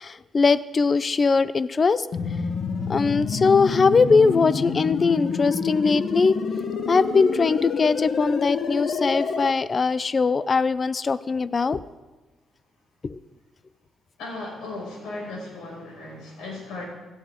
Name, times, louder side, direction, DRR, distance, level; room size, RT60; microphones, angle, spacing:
voice 1, 0.0-2.1 2.9-6.4 6.9-11.8 13.0-13.2, left 4 dB, 35° left, 16 dB, 0.5 m, -21 dB
sound 1, 2.1-9.5, left 5 dB, 60° left, 1.2 m, -28 dB
voice 2, 14.2-16.9, left 2 dB, 85° left, -2 dB, 5.8 m, -36 dB
17.5 x 13.0 x 3.7 m, 1.2 s
cardioid pair, 90°, 0 cm